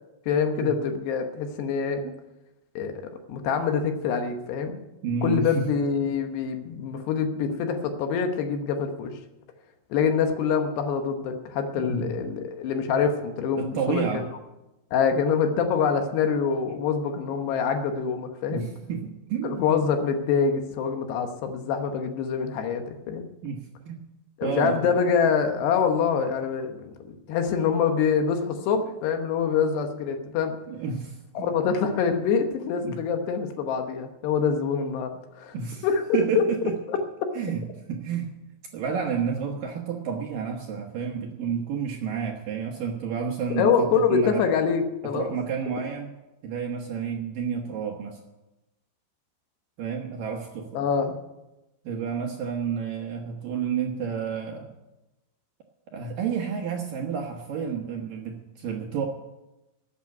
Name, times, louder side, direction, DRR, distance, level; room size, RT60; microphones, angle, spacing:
voice 1, 0.3-2.0 2.8-2.9 3.3-4.8 5.2-9.2 9.9-14.2 14.9-18.7 19.4-23.2 24.4-30.6 31.4-35.6 35.8-36.4 36.9-37.0 43.5-45.3 50.7-51.2, left 6 dB, 75° left, 6 dB, 3.0 m, -25 dB
voice 2, 5.0-5.7 11.9-12.2 13.6-14.3 18.5-19.6 23.4-24.0 24.4-24.9 30.7-31.5 32.8-33.0 35.5-35.9 36.1-36.8 37.4-38.3 38.7-44.4 45.0-46.1 46.4-48.2 49.8-50.8 51.8-54.7 55.9-59.1, right 6 dB, 70° right, 1 dB, 2.3 m, -30 dB
13.0 x 8.6 x 9.2 m, 0.99 s
omnidirectional pair, 5.2 m